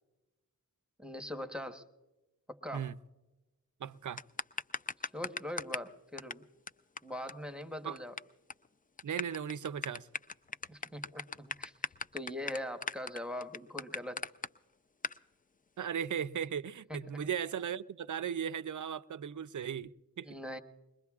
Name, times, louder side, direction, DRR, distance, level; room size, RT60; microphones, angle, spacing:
voice 1, 1.0-1.9 2.5-2.9 5.1-6.4 7.0-8.1 10.7-11.7 12.1-14.2 17.1-17.3 20.2-20.6, left 1 dB, ahead, 1.1 m, -41 dB
voice 2, 3.8-4.2 7.8-8.0 9.0-10.1 15.8-20.3, right 8 dB, 55° right, 0.5 m, -37 dB
sound 1, 4.2-5.9 6.2-6.3 6.7-6.8 7.0-7.1 7.3-7.4 7.6-8.2 8.5-8.7 9.0-14.5 15.0-15.2, left 4 dB, 25° left, 0.4 m, -38 dB
22.0 x 21.5 x 2.4 m
wide cardioid pair, 50°, 36 cm